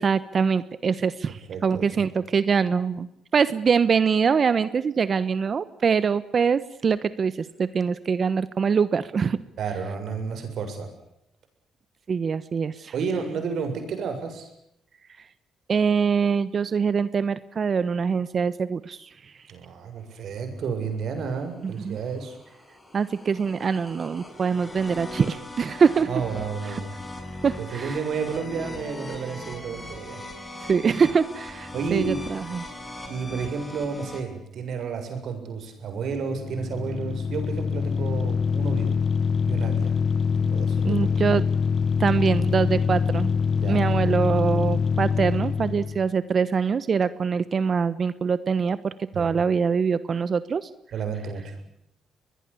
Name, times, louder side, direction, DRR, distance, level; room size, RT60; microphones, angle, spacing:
voice 1, 0.0-3.1 3.3-9.4 12.1-12.9 15.7-19.1 21.6-22.0 22.9-26.1 26.7-26.8 27.4-28.0 30.7-32.6 40.8-41.4 42.0-43.3 43.7-50.7, right 6 dB, 45° right, 16 dB, 1.1 m, -24 dB
voice 2, 1.3-2.0 9.6-10.9 12.9-14.5 19.5-22.4 26.1-26.9 27.6-30.2 30.6-30.7 31.7-32.2 33.1-39.0 39.4-39.9 40.4-41.1 43.6-43.8 49.1-49.3 50.9-51.7, right 5 dB, 65° right, 6 dB, 7.3 m, -31 dB
sound 1, 21.2-34.2, left 1 dB, 20° left, 7.1 m, -40 dB
sound 2, 36.2-46.0, left 5 dB, 45° left, 1.2 m, -24 dB
24.5 x 21.0 x 8.6 m, 0.78 s
cardioid pair, 90°, 0 cm